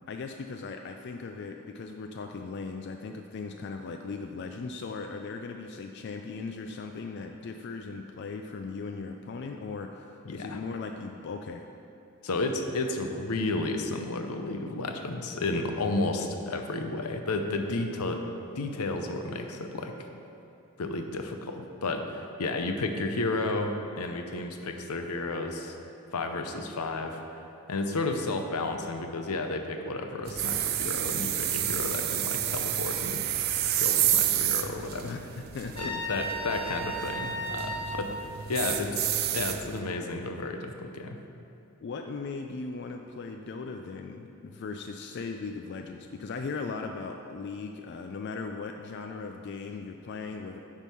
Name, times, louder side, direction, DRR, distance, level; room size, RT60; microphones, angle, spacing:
voice 1, 0.1-11.7 35.0-35.3 35.5-36.1 37.9-38.0 41.8-50.6, left 4 dB, 50° left, 4 dB, 0.3 m, -38 dB
voice 2, 10.2-10.6 12.2-18.2 18.6-20.0 20.8-25.8 26.1-27.4 27.7-33.3 33.8-35.2 35.8-39.0 39.3-41.2, left 2 dB, 85° left, 5 dB, 0.7 m, -32 dB
sound 1, 30.3-39.8, right 11 dB, 45° right, 0.4 m, -30 dB
Trumpet, 35.7-38.1, right 1 dB, 25° left, 1.7 m, -34 dB
9.8 x 3.6 x 6.1 m, 2.7 s
head